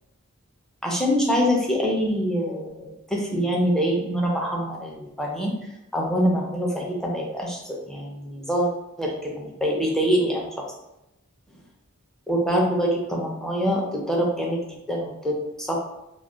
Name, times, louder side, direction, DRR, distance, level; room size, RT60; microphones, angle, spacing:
voice 1, 0.8-5.6 5.9-8.7 9.0-10.6 12.3-15.8, equal, ahead, -2 dB, 0.4 m, -25 dB
2.3 x 2.1 x 3.7 m, 0.91 s
head